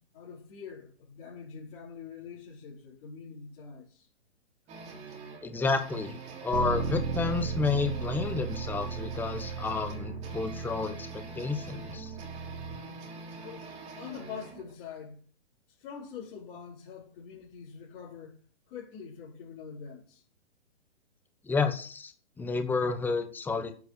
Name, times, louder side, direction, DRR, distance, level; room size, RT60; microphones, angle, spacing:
voice 1, 0.1-4.1 13.4-13.7 14.0-15.2 15.7-18.4 18.7-20.2, left 7 dB, 35° left, 5.1 m, -44 dB
sound 1, 4.7-14.7, right 4 dB, 20° right, 3.6 m, -44 dB
voice 2, 5.4-12.1 21.4-22.1 22.4-23.7, left 4 dB, 5° left, 1.0 m, -30 dB
Bass guitar, 6.5-12.8, right 5 dB, 90° right, 2.1 m, -36 dB
12.0 x 8.2 x 6.8 m
hypercardioid pair, 150°, 34 cm